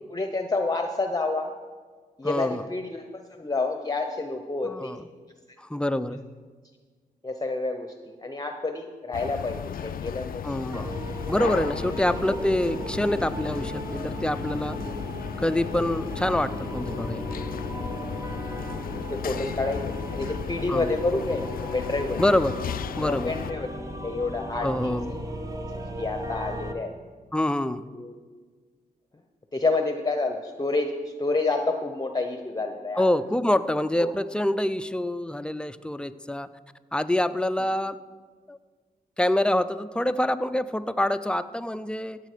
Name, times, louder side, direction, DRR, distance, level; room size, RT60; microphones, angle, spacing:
voice 1, 0.1-1.5 2.2-4.9 7.2-10.5 10.7-11.2 11.8-12.0 13.4-13.5 19.1-21.4 21.7-22.2 23.0-24.9 26.0-26.9 27.9-28.2 29.5-33.0 34.0-34.1, left 3 dB, 25° left, 5 dB, 0.8 m, -29 dB
voice 2, 2.2-2.6 4.6-5.0 5.6-6.2 10.4-14.8 15.4-17.3 20.7-20.9 22.2-22.6 23.0-23.3 24.6-25.2 27.3-27.8 33.0-36.5 36.9-38.0 38.5-38.6 39.2-42.2, left 1 dB, 5° left, 12 dB, 0.5 m, -26 dB
sound 1, 9.1-23.5, left 9 dB, 65° left, 0.4 m, -35 dB
sound 2, 10.7-26.7, equal, 20° right, 1.1 m, -36 dB
15.5 x 7.5 x 5.0 m, 1.5 s
cardioid pair, 70°, 16 cm